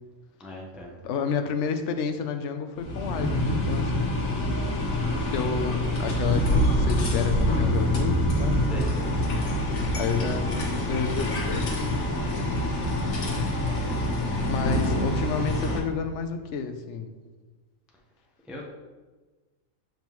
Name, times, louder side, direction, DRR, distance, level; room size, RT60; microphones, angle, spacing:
voice 1, 0.4-0.9 8.7-9.1 18.5-18.7, left 1 dB, ahead, -2 dB, 0.6 m, -40 dB
voice 2, 1.0-4.1 5.3-9.4 10.0-11.7 14.2-17.1, left 6 dB, 65° left, 7 dB, 0.9 m, -31 dB
sound 1, 2.8-15.8, left 1 dB, 85° left, 1.5 m, -26 dB
7.2 x 5.2 x 3.1 m, 1.3 s
omnidirectional pair, 1.4 m